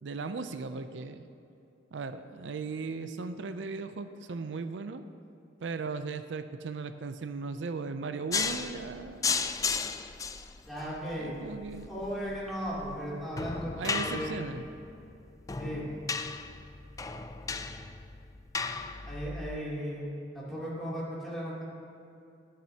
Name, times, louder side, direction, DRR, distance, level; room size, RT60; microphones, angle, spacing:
voice 1, 0.0-1.3 1.9-5.0 5.6-9.5 11.1-11.9 13.8-14.6, right 4 dB, 85° right, 10 dB, 0.5 m, -37 dB
sound 1, 8.3-19.6, left 5 dB, 20° left, 0.3 m, -35 dB
voice 2, 10.7-11.4 11.9-14.5 15.6-16.0 19.0-21.6, equal, ahead, -8 dB, 2.9 m, -36 dB
21.0 x 7.4 x 2.8 m, 2.7 s
head